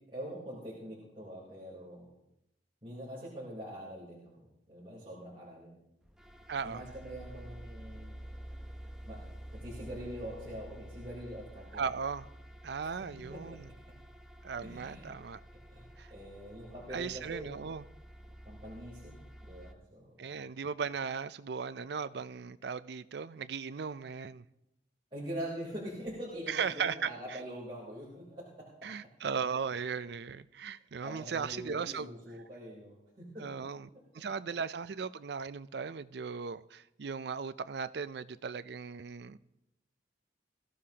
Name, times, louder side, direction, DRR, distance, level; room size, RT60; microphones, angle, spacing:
voice 1, 0.1-2.1 2.8-5.8 6.6-8.1 9.1-9.3 9.5-11.8 12.8-13.6 14.6-15.0 15.7-17.5 18.2-20.2 25.1-28.7 31.0-33.6 33.9-34.0, equal, 30° right, -8 dB, 3.5 m, -44 dB
sound 1, 6.0-19.7, right 1 dB, 5° right, 0.8 m, -49 dB
voice 2, 6.5-6.8 11.7-12.3 12.6-13.7 14.4-15.4 16.0-16.1 16.9-17.9 20.2-24.4 26.5-27.1 28.8-32.1 33.4-33.9 34.1-39.4, right 6 dB, 60° right, 15 dB, 0.4 m, -37 dB
21.0 x 14.0 x 2.9 m, 0.84 s
head